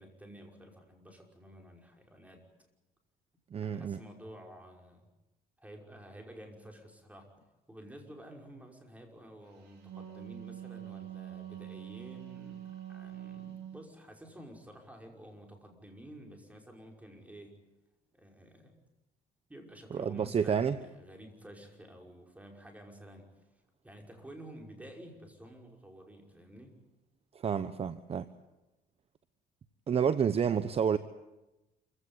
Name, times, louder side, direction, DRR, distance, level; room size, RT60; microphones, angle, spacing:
voice 1, 0.0-2.5 3.6-5.1 5.6-7.3 7.7-17.6 18.1-18.8 19.5-23.3 23.8-26.7, right 1 dB, 10° right, 2 dB, 5.6 m, -51 dB
voice 2, 3.5-4.0 19.9-20.8 27.3-28.3 29.9-31.0, right 7 dB, 35° right, 13 dB, 1.0 m, -29 dB
Wind instrument woodwind instrument, 9.6-13.8, right 11 dB, 80° right, 7.6 m, -45 dB
27.5 x 16.5 x 9.8 m, 1.0 s
cardioid pair, 110°, 17 cm